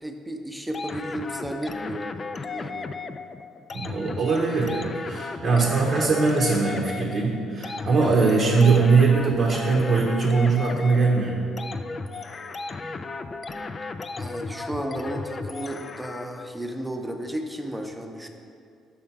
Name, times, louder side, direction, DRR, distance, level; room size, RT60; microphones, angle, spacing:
voice 1, 0.0-2.2 2.5-2.9 14.2-18.3, right 1 dB, 5° right, 3 dB, 0.7 m, -33 dB
sound 1, 0.7-16.5, left 3 dB, 40° left, 0.3 m, -35 dB
voice 2, 3.7-11.4, right 4 dB, 60° right, -3 dB, 0.8 m, -21 dB
5.6 x 3.7 x 5.7 m, 2.4 s
supercardioid pair, 65°, 0 cm